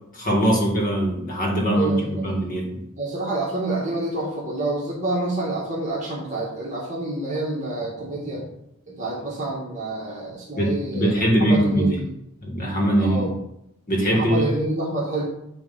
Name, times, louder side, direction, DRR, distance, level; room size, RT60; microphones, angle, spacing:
voice 1, 0.1-2.8 10.5-12.0 12.4-13.4 13.9-14.4, right 1 dB, 40° left, 0 dB, 2.0 m, -22 dB
voice 2, 1.7-2.4 3.0-8.5 8.9-12.1 13.0-13.4 14.1-15.2, right 2 dB, 35° right, -5 dB, 1.9 m, -28 dB
9.6 x 3.4 x 5.6 m, 0.79 s
head